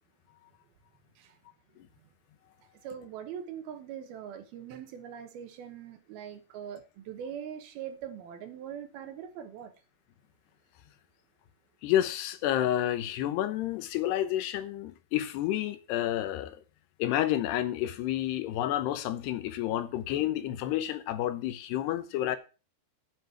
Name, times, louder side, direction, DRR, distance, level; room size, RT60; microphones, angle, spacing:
voice 1, 2.8-9.7, right 8 dB, 70° right, 2.8 m, -42 dB
voice 2, 11.8-16.6 17.0-22.4, left 12 dB, 80° left, 2.9 m, -30 dB
8.0 x 7.5 x 7.3 m
omnidirectional pair, 4.9 m